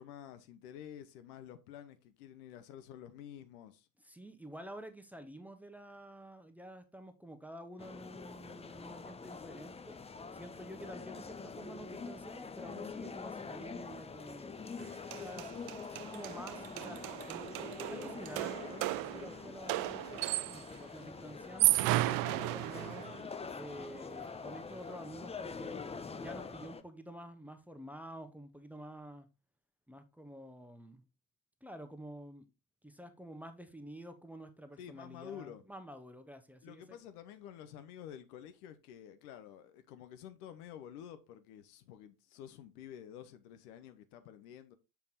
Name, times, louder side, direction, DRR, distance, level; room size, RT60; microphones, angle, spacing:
voice 1, 0.0-3.9 34.8-35.6 36.6-44.8, left 9 dB, 65° left, 0.9 m, -50 dB
voice 2, 4.0-10.0 10.3-14.5 15.1-15.6 15.9-17.5 17.9-20.3 20.5-23.1 23.5-25.8 26.1-29.3 29.9-31.0 31.6-32.5 32.8-37.0, right 1 dB, 5° right, 0.9 m, -49 dB
sound 1, 7.8-26.8, left 5 dB, 15° left, 0.6 m, -45 dB
sound 2, 14.8-14.9 15.1-20.7 21.4-23.2, right 17 dB, 45° right, 0.5 m, -34 dB
7.0 x 4.8 x 3.9 m
figure-of-eight pair, 50°, 48 cm